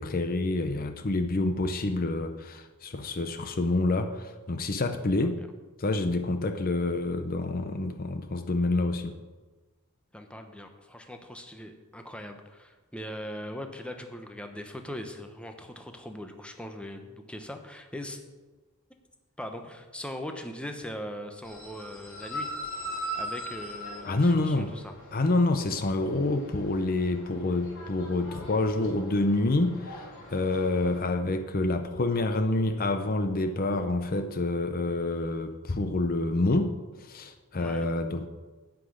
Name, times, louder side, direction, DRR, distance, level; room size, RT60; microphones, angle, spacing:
voice 1, 0.0-5.4 5.8-9.1 24.0-24.7 25.1-38.3, left 2 dB, 40° left, 8 dB, 0.6 m, -27 dB
voice 2, 10.1-18.2 19.4-22.5 23.1-24.9 37.5-37.9, equal, 5° left, 5 dB, 0.9 m, -40 dB
sound 1, 21.4-31.1, equal, 60° left, 3.6 m, -41 dB
9.9 x 6.1 x 8.6 m, 1.3 s
head